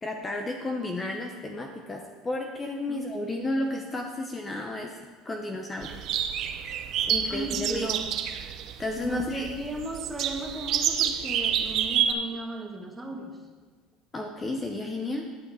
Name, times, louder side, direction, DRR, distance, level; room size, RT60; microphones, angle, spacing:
voice 1, 0.0-5.0 5.2-6.0 7.1-7.9 8.8-9.5 14.1-15.3, left 2 dB, 20° left, 3 dB, 0.8 m, -32 dB
voice 2, 3.5-3.8 7.3-8.1 9.0-13.4, right 2 dB, 10° right, 1 dB, 1.6 m, -36 dB
sound 1, 5.8-12.1, right 9 dB, 55° right, 0.6 m, -28 dB
11.0 x 6.3 x 4.9 m, 1.4 s
supercardioid pair, 110°, 0 cm